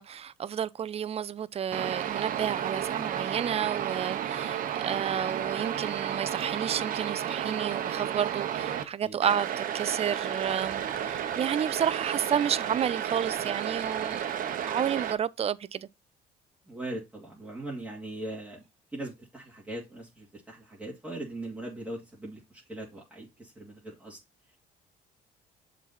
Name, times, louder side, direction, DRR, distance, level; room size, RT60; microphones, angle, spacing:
voice 1, 0.0-14.4 14.7-15.9, right 8 dB, 35° right, 0.5 m, -31 dB
sound 1, 1.7-8.8 9.2-15.1, right 9 dB, 55° right, 1.0 m, -32 dB
voice 2, 16.7-18.6 18.9-24.2, right 1 dB, 10° right, 2.3 m, -40 dB
7.3 x 4.0 x 4.2 m
cardioid pair, 110°, 17 cm